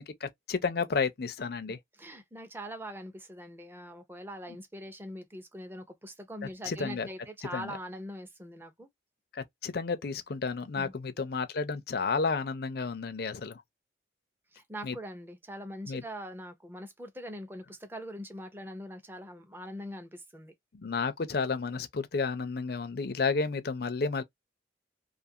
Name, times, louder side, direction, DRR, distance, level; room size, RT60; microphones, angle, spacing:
voice 1, 0.0-1.8 6.7-7.1 7.5-7.7 9.3-13.6 14.8-14.9 15.9-16.0 20.7-24.2, left 4 dB, 55° left, 0.5 m, -31 dB
voice 2, 1.7-8.9 10.7-10.9 14.5-20.5, equal, 10° right, 0.6 m, -42 dB
2.5 x 2.4 x 2.7 m
head